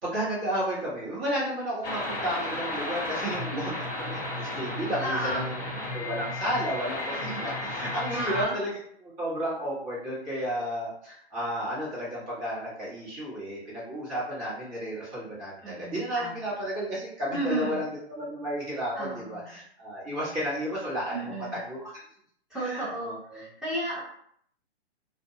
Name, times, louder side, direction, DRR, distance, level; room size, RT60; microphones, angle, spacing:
voice 1, 0.0-5.6 5.9-22.0 22.5-23.4, equal, 25° right, -9 dB, 1.1 m, -32 dB
sound 1, 1.8-8.4, left 2 dB, 20° left, 1.0 m, -33 dB
voice 2, 5.0-5.4 8.1-8.6 15.6-16.3 17.3-17.8 18.9-19.4 21.1-21.5 22.5-24.0, right 1 dB, ahead, -9 dB, 0.9 m, -33 dB
2.4 x 2.2 x 2.7 m, 0.66 s
figure-of-eight pair, 125°, 33 cm